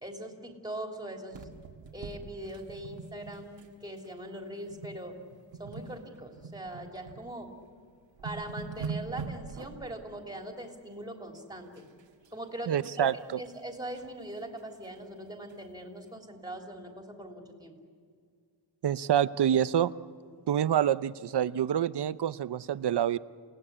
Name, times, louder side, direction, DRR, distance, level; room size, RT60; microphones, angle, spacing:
voice 1, 0.0-1.5 1.9-5.2 5.6-7.5 8.2-11.9 12.3-13.1 13.4-17.7, right 1 dB, 10° right, 2 dB, 3.4 m, -41 dB
sound 1, 1.3-3.7 4.0-4.2 4.7-5.0 5.3-7.2 7.7-7.8 8.0-9.9 11.8-12.3 12.7-14.1 14.6-14.7 15.0-15.1 15.5-15.6, right 5 dB, 90° right, 1.9 m, -42 dB
voice 2, 12.7-13.4 18.8-19.9 20.5-23.2, right 10 dB, 65° right, 15 dB, 0.7 m, -27 dB
29.5 x 18.0 x 9.9 m, 2.1 s
wide cardioid pair, 125°, 43 cm